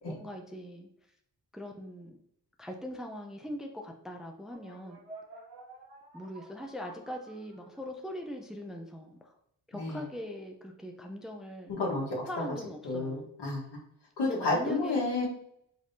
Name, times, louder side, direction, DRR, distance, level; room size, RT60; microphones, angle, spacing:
voice 1, 0.1-0.9 1.5-2.2 2.6-5.0 6.1-9.4 9.7-11.7 12.3-13.3 14.2-15.0, equal, ahead, 2 dB, 0.6 m, -41 dB
sound 1, 4.5-8.0, right 2 dB, 85° right, 1.7 m, -51 dB
voice 2, 11.7-12.2 12.8-13.8 14.2-15.3, left 2 dB, 70° left, -3 dB, 1.6 m, -31 dB
5.1 x 3.4 x 2.8 m, 0.71 s
cardioid pair, 55°, 42 cm